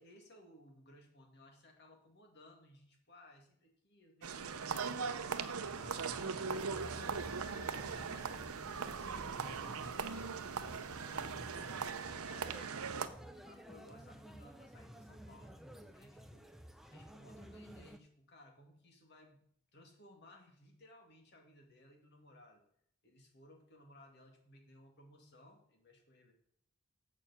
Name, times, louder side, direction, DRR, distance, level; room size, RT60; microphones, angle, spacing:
voice 1, 0.0-6.3 6.7-11.7 12.1-16.4 16.9-19.4 19.7-22.6 23.0-26.3, left 1 dB, 50° left, 2 dB, 2.0 m, -61 dB
sound 1, 4.2-13.1, right 5 dB, 80° right, 0.7 m, -40 dB
sound 2, 5.6-18.0, equal, ahead, 0.5 m, -54 dB
sound 3, 6.7-11.8, equal, 15° left, 1.4 m, -56 dB
7.1 x 6.8 x 7.1 m, 0.68 s
head